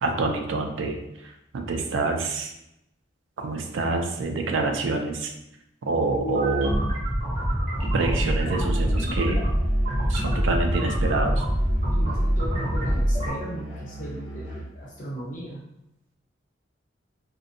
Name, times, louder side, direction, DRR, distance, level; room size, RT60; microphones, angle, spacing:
voice 1, 0.0-2.5 3.4-5.3 5.8-6.9 7.9-9.4 10.1-11.4, right 3 dB, 85° right, 4 dB, 0.4 m, -27 dB
sound 1, 6.2-13.3, equal, 40° right, 0.7 m, -25 dB
Musical instrument, 7.9-14.8, right 1 dB, ahead, 1.3 m, -38 dB
voice 2, 11.9-15.6, equal, 45° left, -4 dB, 0.8 m, -37 dB
2.5 x 2.1 x 2.5 m, 0.84 s
head